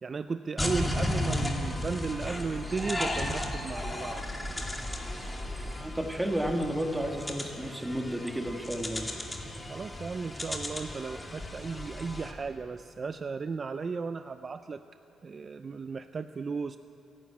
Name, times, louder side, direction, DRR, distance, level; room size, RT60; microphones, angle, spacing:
voice 1, 0.0-4.2 9.7-14.8 15.2-16.8, right 4 dB, 35° right, 10 dB, 0.5 m, -35 dB
sound 1, 0.6-12.3, left 1 dB, 10° left, 2.3 m, -35 dB
voice 2, 5.8-9.1, right 1 dB, 10° right, 3 dB, 1.8 m, -32 dB
27.5 x 11.5 x 8.6 m, 2.7 s
cardioid pair, 125°, 0 cm